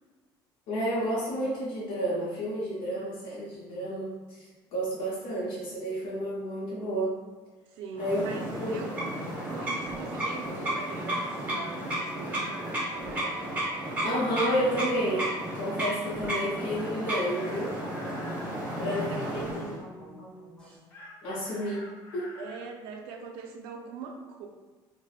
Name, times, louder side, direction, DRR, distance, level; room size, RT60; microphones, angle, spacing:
voice 1, 0.7-7.2 8.0-8.3 8.6-8.9 14.0-17.8 18.8-19.7 21.2-22.4, equal, 75° left, -8 dB, 0.7 m, -31 dB
voice 2, 7.7-9.1 9.4-13.5 18.7-19.6 22.4-24.5, right 5 dB, 80° right, 2 dB, 0.4 m, -42 dB
sound 1, 8.0-19.8, right 1 dB, 15° right, 0.8 m, -33 dB
sound 2, 8.1-20.8, equal, 5° left, 1.1 m, -47 dB
Chicken rooster, 11.1-12.9 16.7-18.5 20.9-22.7, left 1 dB, 25° left, 0.4 m, -49 dB
3.2 x 2.0 x 2.3 m, 1.3 s
cardioid pair, 170°, 9 cm